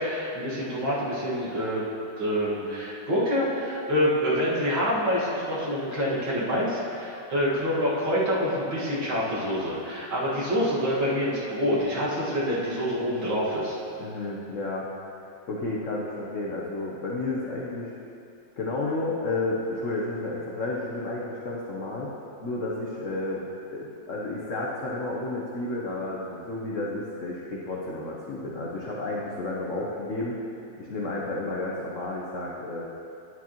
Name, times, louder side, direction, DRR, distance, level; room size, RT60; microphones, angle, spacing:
voice 1, 0.0-1.9 2.2-13.8, equal, 65° right, -7 dB, 2.5 m, -26 dB
voice 2, 14.0-14.9 15.2-17.9 18.6-22.1 22.4-23.4 23.7-30.3 30.8-32.9, left 2 dB, 65° left, -4 dB, 0.7 m, -31 dB
9.5 x 9.4 x 2.9 m, 2.7 s
omnidirectional pair, 2.3 m